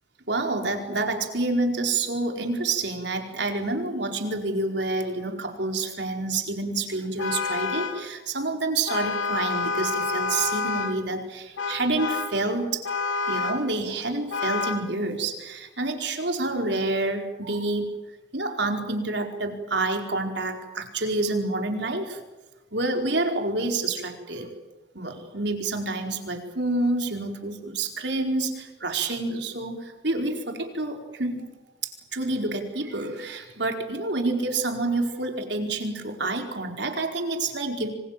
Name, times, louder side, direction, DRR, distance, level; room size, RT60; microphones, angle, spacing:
voice 1, 0.3-12.8 13.3-17.9 18.3-22.2 22.7-24.5 24.9-31.5 31.8-37.9, right 2 dB, 60° right, 4 dB, 4.7 m, -28 dB
Vehicle horn car horn honking, 7.2-8.1 8.9-11.0 11.6-12.4 12.8-13.7 14.3-14.9, left 4 dB, 90° left, 2.4 m, -28 dB
27.0 x 25.5 x 7.6 m, 1.1 s
head